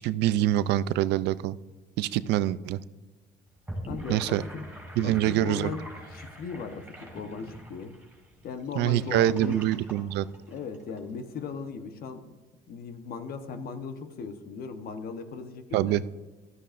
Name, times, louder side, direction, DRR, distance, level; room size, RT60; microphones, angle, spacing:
voice 1, 0.0-1.6 2.0-2.8 4.1-4.4 5.0-5.7 8.7-10.3 15.7-16.0, right 13 dB, 85° right, 16 dB, 0.4 m, -25 dB
Gurgling / Sink (filling or washing), 3.5-11.0, equal, 10° right, 3.9 m, -44 dB
voice 2, 3.9-4.7 5.0-8.0 8.4-9.6 10.5-12.3 12.7-16.0, left 5 dB, 60° left, 8 dB, 1.1 m, -38 dB
14.0 x 13.0 x 2.5 m, 1.2 s
cardioid pair, 110°, 17 cm